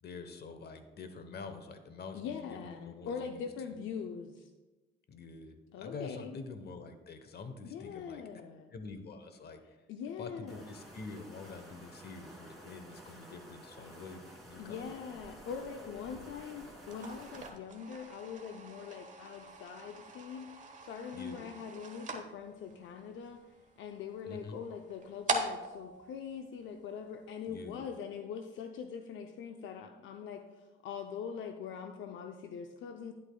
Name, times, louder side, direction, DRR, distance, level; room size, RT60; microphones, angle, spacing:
voice 1, 0.0-3.8 5.1-8.2 8.7-9.8 10.2-14.9 15.6-16.1 21.1-21.4 24.3-24.6 27.5-27.9, left 4 dB, 55° left, 8 dB, 1.0 m, -47 dB
voice 2, 2.1-4.5 5.7-6.4 7.7-8.7 9.9-10.6 13.8-14.0 14.6-23.4 23.8-33.1, left 7 dB, 80° left, 5 dB, 0.5 m, -43 dB
sound 1, 10.5-17.5, right 1 dB, ahead, 2.7 m, -52 dB
sound 2, 16.8-27.2, right 2 dB, 40° right, 1.2 m, -42 dB
11.0 x 8.2 x 2.3 m, 1.2 s
cardioid pair, 90°, 20 cm